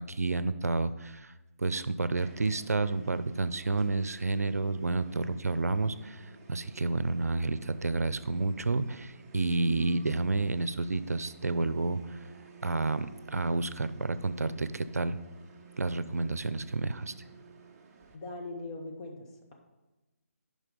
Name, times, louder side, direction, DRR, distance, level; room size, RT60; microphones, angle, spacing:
voice 1, 0.0-1.3 1.6-12.3 12.6-15.2 15.8-17.1, right 3 dB, 85° right, 14 dB, 0.5 m, -30 dB
sound 1, 2.1-18.2, right 4 dB, 15° right, 0.8 m, -53 dB
voice 2, 18.1-19.5, left 2 dB, 30° left, 0 dB, 1.5 m, -41 dB
9.8 x 5.3 x 5.2 m, 1.1 s
figure-of-eight pair, 160°, 8 cm